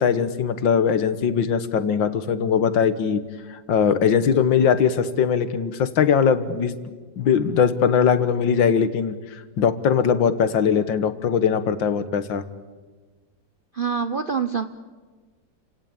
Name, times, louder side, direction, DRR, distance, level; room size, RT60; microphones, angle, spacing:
voice 1, 0.0-3.2 3.5-6.7 7.2-12.4, left 7 dB, 80° left, 12 dB, 2.0 m, -20 dB
voice 2, 13.7-14.6, right 6 dB, 50° right, 10 dB, 0.6 m, -25 dB
30.0 x 17.5 x 8.9 m, 1.4 s
omnidirectional pair, 2.0 m